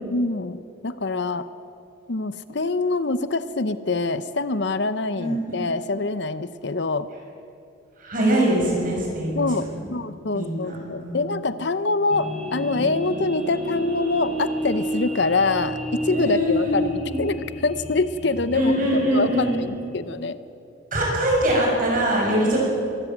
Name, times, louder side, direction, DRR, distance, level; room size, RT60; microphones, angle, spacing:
voice 1, 0.1-0.6 0.8-1.5 2.1-7.1 9.3-18.7 19.1-20.4, left 3 dB, 60° left, 14 dB, 0.7 m, -25 dB
voice 2, 5.2-5.7 8.0-9.7 10.3-11.3 16.1-17.2 18.5-19.6 20.9-22.6, right 1 dB, 45° right, -2 dB, 7.0 m, -23 dB
sound 1, 12.1-19.6, right 1 dB, ahead, 4.4 m, -31 dB
23.5 x 14.0 x 9.1 m, 2.6 s
head